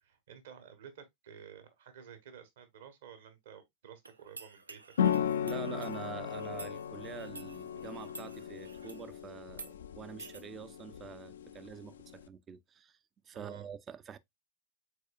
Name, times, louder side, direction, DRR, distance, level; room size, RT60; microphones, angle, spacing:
voice 1, 0.0-5.3 13.3-13.7, right 8 dB, 60° right, 1.2 m, -52 dB
sound 1, 4.0-9.1 9.5-9.7 10.2-10.4, right 3 dB, 80° right, 0.5 m, -51 dB
sound 2, 5.0-12.3, left 8 dB, 65° left, 0.3 m, -36 dB
voice 2, 5.4-13.0 13.2-14.2, right 7 dB, 25° right, 0.4 m, -46 dB
4.8 x 4.1 x 2.4 m
figure-of-eight pair, 90°, 0 cm